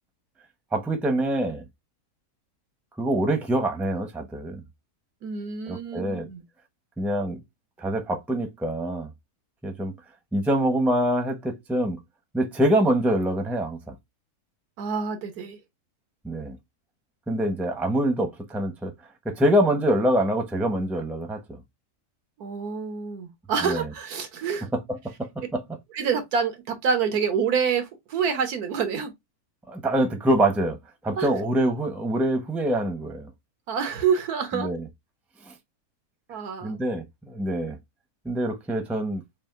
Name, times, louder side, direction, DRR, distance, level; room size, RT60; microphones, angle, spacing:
voice 1, 0.7-1.7 3.0-4.6 5.7-6.3 7.0-7.4 7.8-9.1 9.6-9.9 10.3-12.0 12.3-13.9 16.2-16.6 17.3-18.9 19.2-21.6 23.6-23.8 24.7-25.6 29.7-30.8 31.0-33.3 34.5-34.8 35.4-35.5 36.6-37.8 38.2-39.2, right 1 dB, ahead, 0.7 m, -25 dB
voice 2, 5.2-6.4 14.8-15.6 22.4-24.7 25.9-29.1 31.2-31.4 33.7-34.7 36.3-36.8, right 6 dB, 75° right, 1.4 m, -27 dB
6.2 x 2.5 x 2.5 m
omnidirectional pair, 1.6 m